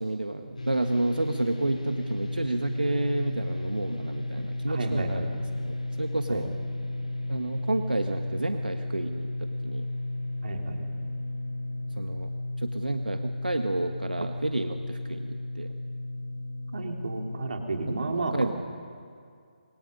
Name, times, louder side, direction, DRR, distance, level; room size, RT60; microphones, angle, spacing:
voice 1, 0.0-6.5 7.3-9.9 12.0-12.3 12.6-15.8 18.3-18.5, right 2 dB, 90° right, 6 dB, 1.4 m, -30 dB
sound 1, 0.6-18.0, left 2 dB, 60° left, 7.8 m, -34 dB
voice 2, 4.7-5.4 6.3-6.4 10.4-10.8 16.7-18.5, right 3 dB, 60° right, 2 dB, 3.6 m, -32 dB
26.5 x 23.5 x 5.5 m, 2.3 s
figure-of-eight pair, 150°, 5 cm